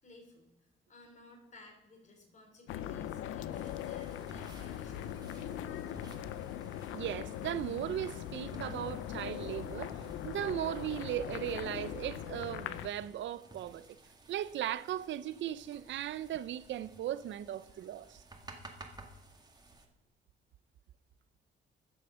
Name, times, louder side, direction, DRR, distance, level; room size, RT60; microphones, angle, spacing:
voice 1, 0.0-5.8, left 2 dB, 35° left, 3.5 m, -58 dB
sound 1, 2.7-12.9, left 11 dB, 85° left, 0.5 m, -41 dB
sound 2, 3.5-19.9, right 1 dB, 20° right, 1.8 m, -54 dB
voice 2, 6.9-9.9 10.2-14.0 14.3-18.2, right 11 dB, 70° right, 0.6 m, -37 dB
11.5 x 6.7 x 6.2 m
cardioid pair, 90°, 20 cm